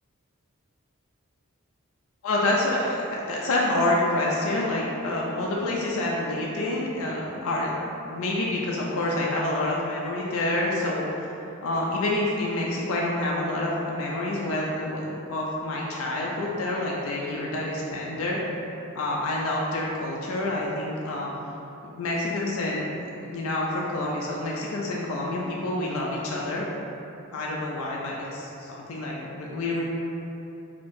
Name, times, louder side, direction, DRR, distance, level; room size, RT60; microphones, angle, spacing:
voice 1, 2.2-7.7 8.1-18.4 18.9-21.3 22.0-22.9 23.3-26.7 27.3-29.8, left 1 dB, 80° left, -3 dB, 0.4 m, -28 dB
3.5 x 2.7 x 2.6 m, 2.8 s
head